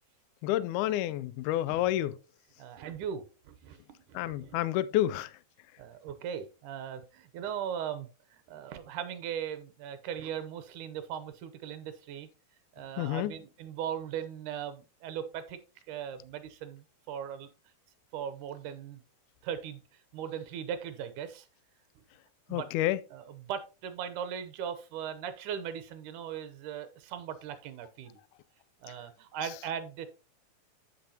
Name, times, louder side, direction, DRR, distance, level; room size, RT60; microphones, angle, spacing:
voice 1, 0.4-2.2 4.2-5.3 13.0-13.3 22.5-23.0, left 13 dB, 80° left, 1.9 m, -29 dB
voice 2, 2.6-4.6 5.8-12.3 12.7-15.6 15.9-17.5 18.1-19.0 19.4-19.8 20.1-21.5 22.5-22.7 23.1-28.2 28.8-30.1, right 8 dB, 75° right, 2.3 m, -39 dB
13.0 x 5.5 x 2.8 m
omnidirectional pair, 3.8 m